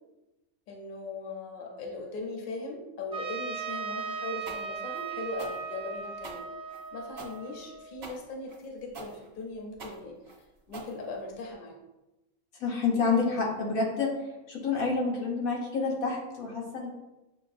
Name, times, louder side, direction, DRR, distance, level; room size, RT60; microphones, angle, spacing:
voice 1, 0.7-6.5 6.9-10.3 10.7-11.8, left 3 dB, 50° left, 1 dB, 0.7 m, -39 dB
Trumpet, 3.1-7.9, right 6 dB, 5° right, 0.5 m, -38 dB
sound 1, 4.5-11.5, right 3 dB, 50° right, 0.8 m, -45 dB
voice 2, 12.6-14.1 14.5-16.9, left 4 dB, 90° left, -1 dB, 1.3 m, -28 dB
6.8 x 2.3 x 2.5 m, 1.0 s
omnidirectional pair, 1.4 m